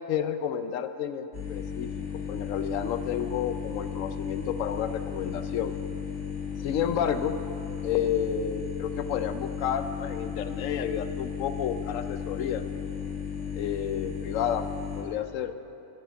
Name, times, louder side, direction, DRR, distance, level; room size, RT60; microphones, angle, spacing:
voice 1, 0.1-5.7 6.6-7.3 7.8-12.6 13.5-14.7 15.0-15.5, left 8 dB, 90° left, 10 dB, 1.0 m, -31 dB
sound 1, 1.3-15.0, left 7 dB, 65° left, 2.1 m, -35 dB
10.0 x 8.0 x 7.5 m, 2.8 s
omnidirectional pair, 1.3 m